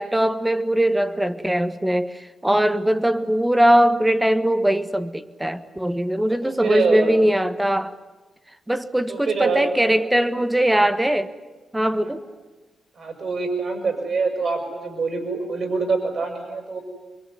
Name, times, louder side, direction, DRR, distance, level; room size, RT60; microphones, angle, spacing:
voice 1, 0.0-7.9 8.7-11.3 11.7-12.2, right 1 dB, 10° right, 11 dB, 1.5 m, -21 dB
voice 2, 6.3-7.1 9.1-10.3 12.0-12.1 12.9-16.8, right 4 dB, 60° right, 5 dB, 6.7 m, -25 dB
26.0 x 23.5 x 9.8 m, 1.2 s
cardioid pair, 75°, 0 cm